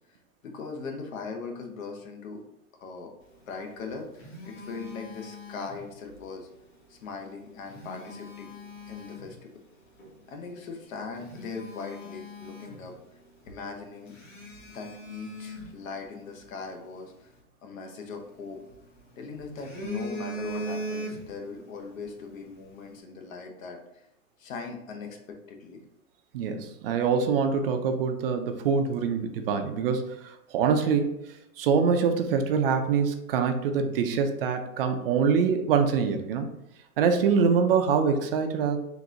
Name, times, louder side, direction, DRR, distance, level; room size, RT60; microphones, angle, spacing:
voice 1, 0.4-2.5 2.8-3.1 3.5-4.1 4.5-6.5 6.9-8.5 8.9-9.6 10.3-12.9 13.5-14.2 14.7-17.3 17.6-18.6 19.2-24.0 24.4-25.8, left 4 dB, 65° left, 3 dB, 1.0 m, -39 dB
Telephone, 3.6-6.2 7.5-9.4 10.0-10.2 10.7-10.8 11.1-13.2 13.5-13.6 14.1-16.5 18.0-19.0 19.4-21.5 21.8-22.0, equal, 35° left, 1.4 m, -39 dB
voice 2, 26.3-31.1 31.6-36.5 37.0-38.8, right 6 dB, 40° right, 6 dB, 0.5 m, -24 dB
4.0 x 2.6 x 3.7 m, 0.82 s
hypercardioid pair, 145°, 43 cm